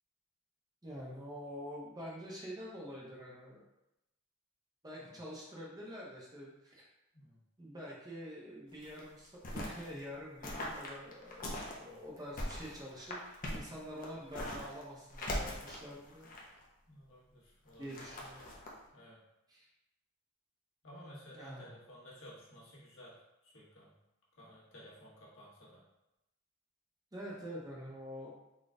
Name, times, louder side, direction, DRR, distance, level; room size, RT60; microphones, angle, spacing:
voice 1, 0.8-3.6 4.8-6.9 7.6-11.5 11.8-16.3 17.8-18.4 19.5-19.7 21.3-21.8 27.1-28.3, equal, 20° right, -5 dB, 0.8 m, -46 dB
sound 1, 8.7-9.9 10.4-11.8 12.2-14.8 15.1-16.6 17.7-18.7, left 1 dB, 40° left, 0.6 m, -41 dB
voice 2, 16.9-18.0 18.9-19.2 20.8-23.1 23.4-23.9 24.4-25.8, equal, 65° left, -6 dB, 1.4 m, -54 dB
4.0 x 2.3 x 3.7 m, 0.91 s
head